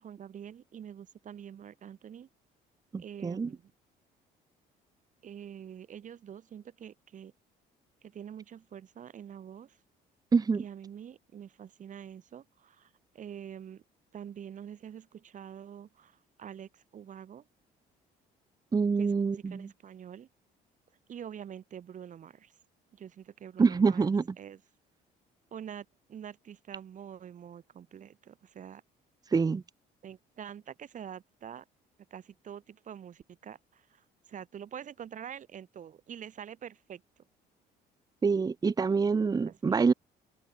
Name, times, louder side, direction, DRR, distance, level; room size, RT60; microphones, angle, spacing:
voice 1, 0.0-2.3 3.0-3.7 5.2-7.3 8.0-9.8 10.6-13.8 14.1-17.4 19.0-20.3 21.1-22.5 22.9-24.1 24.4-24.6 25.5-28.8 30.0-31.6 32.1-37.0 39.4-39.7, right 9 dB, 50° right, 5.1 m, -46 dB
voice 2, 2.9-3.5 10.3-10.6 18.7-19.7 23.6-24.3 29.3-29.6 38.2-39.9, right 5 dB, 20° right, 0.9 m, -26 dB
open air
cardioid pair, 110°, 17 cm